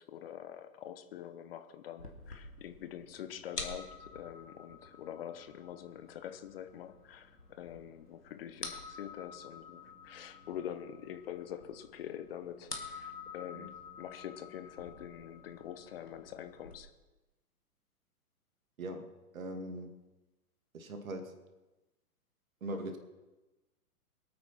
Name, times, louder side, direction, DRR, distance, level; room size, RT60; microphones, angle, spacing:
voice 1, 0.0-16.9, left 10 dB, 40° left, 9 dB, 1.0 m, -45 dB
sound 1, 2.0-16.8, left 3 dB, 90° left, 2.4 m, -49 dB
voice 2, 18.8-19.9 20.7-21.4 22.6-23.0, right 1 dB, 60° right, 6 dB, 2.2 m, -41 dB
24.5 x 8.9 x 4.3 m, 1.1 s
figure-of-eight pair, 115°, 46 cm